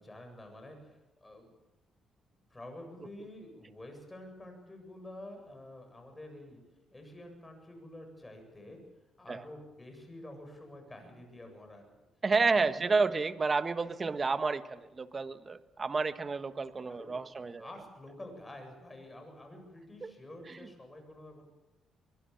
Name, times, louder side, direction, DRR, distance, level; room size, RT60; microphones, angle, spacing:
voice 1, 0.0-1.5 2.5-6.6 6.9-8.8 9.2-11.9 12.7-12.8 16.9-17.1 17.6-21.4, left 1 dB, 15° left, 4 dB, 7.8 m, -49 dB
voice 2, 12.2-17.7 20.0-20.1, right 4 dB, 30° right, 11 dB, 1.3 m, -30 dB
23.5 x 22.5 x 7.2 m, 1.1 s
cardioid pair, 90°, 0 cm